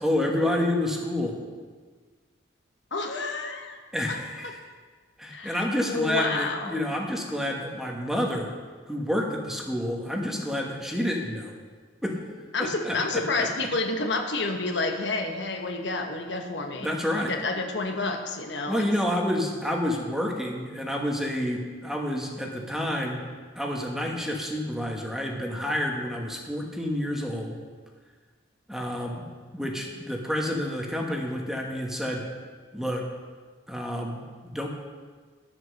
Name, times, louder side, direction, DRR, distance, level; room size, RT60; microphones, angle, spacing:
voice 1, 0.0-1.4 3.9-4.6 5.2-8.5 8.9-11.5 12.0-12.2 12.6-13.2 16.8-17.3 18.7-23.2 23.5-27.6 28.7-29.2 29.5-32.2 32.7-33.0 33.7-34.7, left 1 dB, ahead, 0 dB, 1.3 m, -29 dB
voice 2, 2.9-3.8 4.1-4.2 5.3-6.8 12.5-18.9, left 3 dB, 70° left, 3 dB, 1.2 m, -29 dB
11.0 x 8.1 x 6.5 m, 1.5 s
head